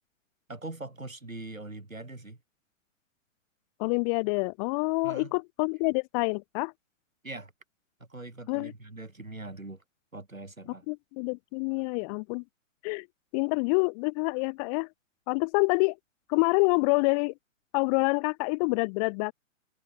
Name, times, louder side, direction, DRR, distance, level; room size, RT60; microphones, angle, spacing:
voice 1, 0.5-2.4 5.0-5.3 7.2-7.5 8.1-9.8 10.1-10.8, right 2 dB, 85° right, 3.6 m, -42 dB
voice 2, 3.8-6.7 8.5-8.7 10.9-12.4 12.8-13.1 13.3-14.9 15.3-16.0 16.3-17.3 17.7-19.3, left 34 dB, 30° left, 1.9 m, -27 dB
figure-of-eight pair, 120°, 39 cm